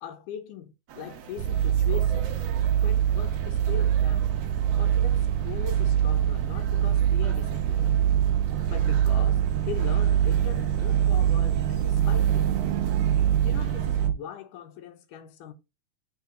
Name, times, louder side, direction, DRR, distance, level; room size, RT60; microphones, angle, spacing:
voice 1, 0.0-2.4 2.8-4.3 4.7-8.0 8.7-9.4 9.7-12.5 13.4-15.5, left 8 dB, 85° left, 2.4 m, -40 dB
sound 1, 0.9-14.1, right 7 dB, 65° right, 1.7 m, -44 dB
sound 2, 1.4-14.1, right 10 dB, 85° right, 2.2 m, -24 dB
6.7 x 3.7 x 3.7 m
omnidirectional pair, 3.6 m